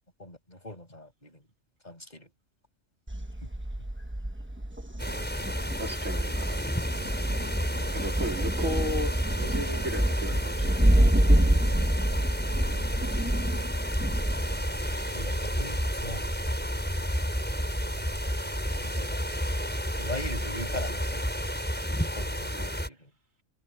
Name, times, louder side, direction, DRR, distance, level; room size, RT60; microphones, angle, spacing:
voice 1, 0.2-1.4 1.8-2.3 11.7-12.0 12.6-12.9 15.1-16.3 18.8-19.3 20.0-21.3 22.0-23.1, left 1 dB, 30° left, 6.5 m, -41 dB
Thunder, 3.1-21.1, right 1 dB, 10° right, 1.1 m, -29 dB
sound 1, 5.0-22.9, equal, 5° left, 6.8 m, -31 dB
voice 2, 5.8-6.6 7.9-10.8 22.5-22.7, right 1 dB, 75° right, 2.9 m, -35 dB
omnidirectional pair, 1.4 m